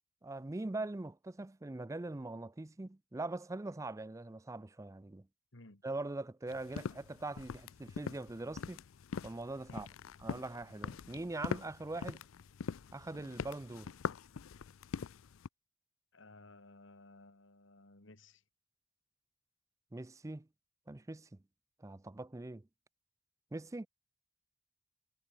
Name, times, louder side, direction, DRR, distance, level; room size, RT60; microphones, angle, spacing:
voice 1, 0.2-5.3 5.8-8.8 9.2-9.9 10.2-12.2 12.9-13.9 19.9-20.5 20.9-21.3 21.8-22.6 23.5-23.9, right 2 dB, 15° right, 0.4 m, -42 dB
voice 2, 5.5-5.8 9.7-9.9 16.1-18.4, left 2 dB, 65° left, 2.3 m, -57 dB
sound 1, 6.5-15.5, left 6 dB, 85° left, 0.5 m, -43 dB
head